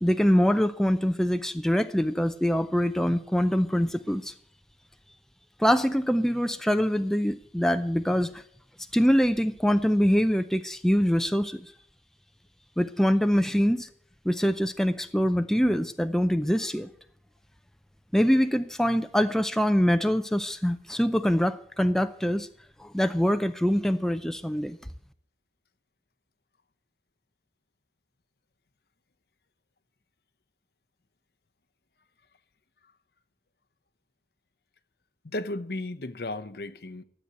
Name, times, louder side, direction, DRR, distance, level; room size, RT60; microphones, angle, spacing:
voice 1, 0.0-4.3 5.6-8.4 8.9-11.6 12.8-13.9 14.3-16.9 18.1-22.5 22.8-24.8, equal, 5° left, 0.5 m, -24 dB
voice 2, 35.2-37.0, left 2 dB, 65° left, 0.8 m, -34 dB
13.0 x 8.1 x 9.2 m
head